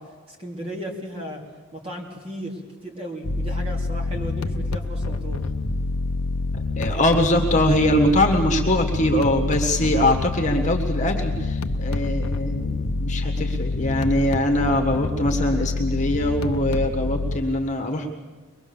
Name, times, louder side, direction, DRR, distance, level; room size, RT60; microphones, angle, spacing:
voice 1, 0.0-1.4 1.7-5.5, equal, 25° right, 0 dB, 2.8 m, -35 dB
sound 1, 3.2-17.4, left 3 dB, 75° left, 0.8 m, -26 dB
voice 2, 6.5-18.1, left 1 dB, 35° left, 2 dB, 1.5 m, -22 dB
23.0 x 21.0 x 7.1 m, 1.3 s
head